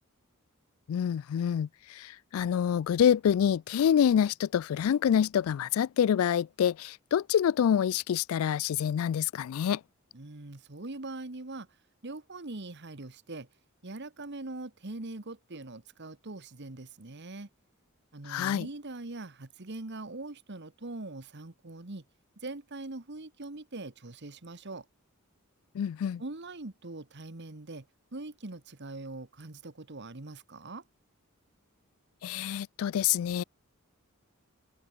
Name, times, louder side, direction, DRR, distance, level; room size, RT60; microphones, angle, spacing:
voice 1, 0.9-9.8 18.3-18.7 25.7-26.2 32.2-33.4, left 9 dB, 75° left, 0.3 m, -27 dB
voice 2, 10.1-11.7 12.0-13.5 13.8-17.5 18.1-22.0 22.4-24.9 26.2-27.9 28.1-30.8, right 2 dB, 55° right, 1.4 m, -42 dB
open air
head